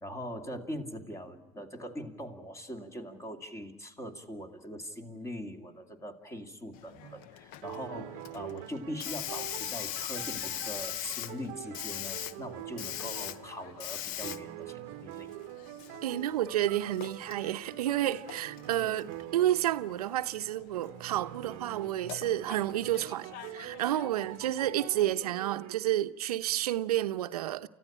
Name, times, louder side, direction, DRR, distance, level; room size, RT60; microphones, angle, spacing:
voice 1, 0.0-15.3, equal, 15° left, 2.3 m, -42 dB
Hiss, 6.7-25.1, left 12 dB, 50° left, 0.8 m, -43 dB
sound 1, 7.0-7.3 7.6-13.9 14.2-20.2 20.7-25.8, right 16 dB, 50° right, 0.9 m, -45 dB
voice 2, 16.0-27.7, right 13 dB, 80° right, 0.8 m, -30 dB
29.5 x 14.5 x 10.0 m
hypercardioid pair, 115°, 19 cm